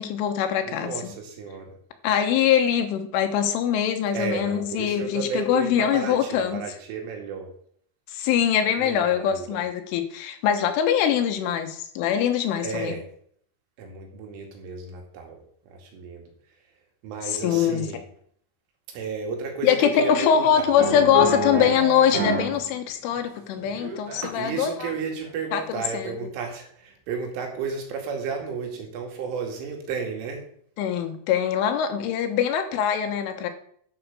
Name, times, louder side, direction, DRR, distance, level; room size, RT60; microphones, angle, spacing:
voice 1, 0.0-1.1 2.0-6.6 8.1-13.0 17.4-17.9 19.6-24.9 25.5-26.2 30.8-33.5, left 9 dB, 80° left, 6 dB, 3.7 m, -23 dB
voice 2, 0.6-1.7 4.1-7.5 8.8-9.6 12.6-13.1 13.8-16.3 17.0-18.0 18.9-20.7 24.3-30.5, right 5 dB, 80° right, 2 dB, 4.7 m, -33 dB
sound 1, 20.8-22.6 22.9-24.5 25.0-25.3, equal, 50° right, 2.9 m, -27 dB
12.0 x 6.1 x 7.0 m, 0.63 s
omnidirectional pair, 5.6 m